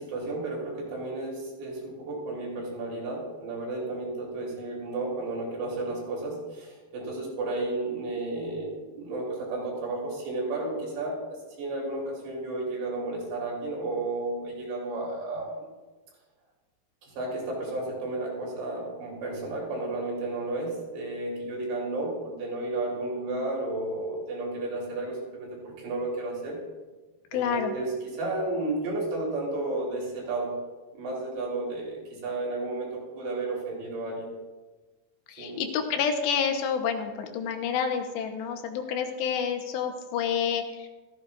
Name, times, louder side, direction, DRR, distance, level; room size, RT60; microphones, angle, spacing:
voice 1, 0.0-15.7 17.0-26.6 27.3-30.6 30.9-34.3 35.4-35.6, right 2 dB, 80° right, -2 dB, 5.0 m, -32 dB
voice 2, 27.3-27.7 35.3-40.9, left 7 dB, 85° left, 5 dB, 3.1 m, -29 dB
15.0 x 13.5 x 2.4 m, 1.2 s
omnidirectional pair, 5.0 m